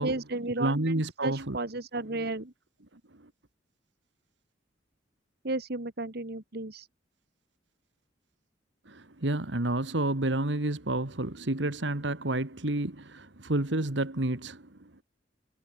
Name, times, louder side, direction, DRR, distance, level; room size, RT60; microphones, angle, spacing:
voice 1, 0.0-0.9 1.2-2.5 5.4-6.9, right 2 dB, 60° right, 2.0 m, -33 dB
voice 2, 0.6-1.6 8.9-14.7, right 2 dB, 75° right, 2.0 m, -30 dB
head